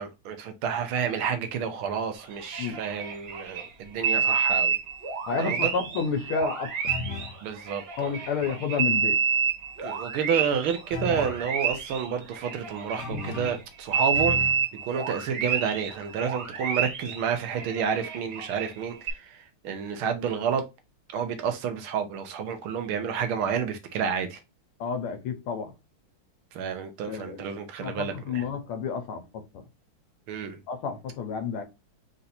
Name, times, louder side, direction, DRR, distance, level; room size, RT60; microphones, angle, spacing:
voice 1, 0.0-4.8 5.4-5.7 7.4-8.1 9.8-14.4 14.8-20.6 21.1-24.4 26.5-28.4 30.3-30.6, right 7 dB, 80° right, 1.7 m, -30 dB
sound 1, 2.2-3.7 4.0-13.6 13.9-18.7 19.1-19.2, right 6 dB, 50° right, 1.8 m, -29 dB
voice 2, 5.3-6.8 8.0-9.2 24.8-25.7 27.1-29.6 30.7-31.6, left 5 dB, 90° left, 1.7 m, -30 dB
sound 2, 6.9-7.4 10.9-11.5 13.0-13.6 14.1-14.7, left 4 dB, 60° left, 0.7 m, -34 dB
4.6 x 2.7 x 4.1 m
omnidirectional pair, 2.3 m